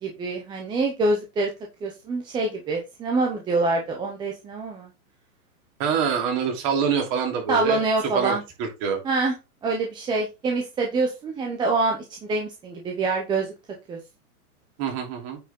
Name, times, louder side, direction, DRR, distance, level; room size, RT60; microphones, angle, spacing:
voice 1, 0.0-1.5 1.8-4.9 7.5-8.4 9.0-9.3 9.6-13.5 13.9-14.0, right 3 dB, 10° right, 1 dB, 0.8 m, -25 dB
voice 2, 5.8-7.8 8.1-9.0 14.8-15.4, right 6 dB, 35° right, 2 dB, 3.1 m, -25 dB
9.0 x 5.1 x 3.7 m, 0.25 s
hypercardioid pair, 155°, 45 cm